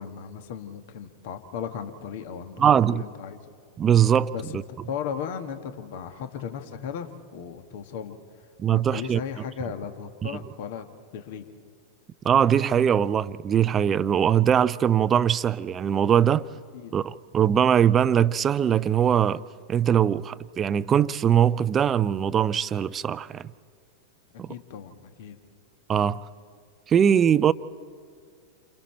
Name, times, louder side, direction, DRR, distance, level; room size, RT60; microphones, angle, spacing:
voice 1, 0.0-3.4 4.3-10.9 11.1-11.4 16.7-16.9 24.5-25.4, left 7 dB, 50° left, 1.4 m, -36 dB
voice 2, 2.6-3.0 3.8-4.6 8.6-9.2 10.2-10.3 12.2-16.4 16.9-19.4 19.7-23.5 24.4-24.5 25.9-26.2 26.9-27.5, right 9 dB, 25° right, 0.5 m, -21 dB
29.5 x 26.5 x 4.4 m
figure-of-eight pair, 90°, 0 cm